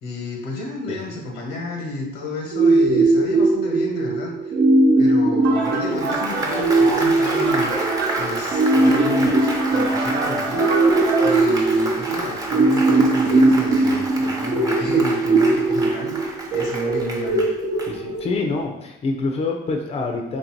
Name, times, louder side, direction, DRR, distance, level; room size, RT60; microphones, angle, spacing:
voice 1, 0.0-4.5 5.0-7.7 8.1-10.7 11.2-17.5, left 2 dB, 90° left, 1 dB, 1.1 m, -31 dB
sound 1, 2.5-18.5, right 2 dB, 50° right, 0.7 m, -19 dB
sound 2, 5.4-11.4, right 3 dB, 80° right, 0.9 m, -28 dB
Applause, 5.6-18.4, right 2 dB, 20° right, 0.8 m, -30 dB
voice 2, 17.8-20.4, left 3 dB, 35° left, 2 dB, 0.6 m, -26 dB
3.3 x 2.6 x 4.5 m, 0.83 s
cardioid pair, 110°, 17 cm